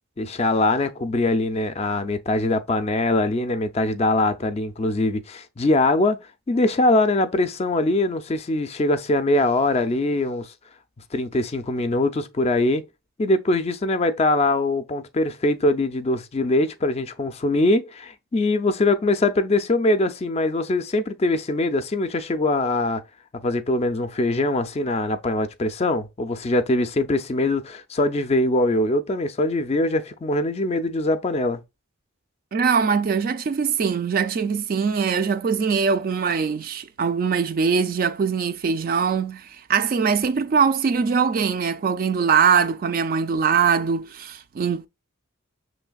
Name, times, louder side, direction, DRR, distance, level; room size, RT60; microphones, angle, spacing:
voice 1, 0.2-6.2 6.5-10.5 11.1-12.8 13.2-23.0 23.4-31.6, left 2 dB, 30° left, 0.4 m, -22 dB
voice 2, 32.5-44.9, right 6 dB, 45° right, 0.3 m, -22 dB
6.2 x 3.2 x 2.3 m
head